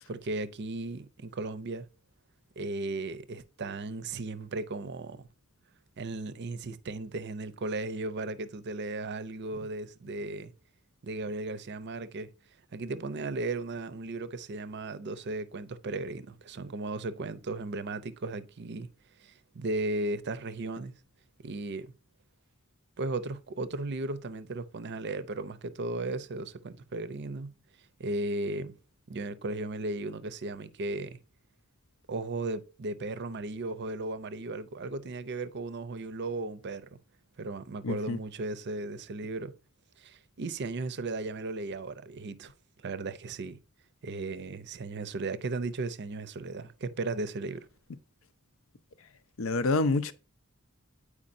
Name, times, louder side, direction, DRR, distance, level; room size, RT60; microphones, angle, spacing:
voice 1, 0.1-1.9 2.6-5.3 6.0-10.5 11.0-12.3 12.7-18.9 19.2-20.9 21.4-21.9 23.0-27.5 28.0-28.8 29.1-31.2 32.1-36.9 37.4-39.5 40.0-42.5 42.8-43.6 44.0-47.7, right 2 dB, 50° right, 0.6 m, -36 dB
voice 2, 37.8-38.2 49.4-50.1, left 3 dB, 65° left, 0.6 m, -27 dB
8.5 x 4.8 x 2.6 m
head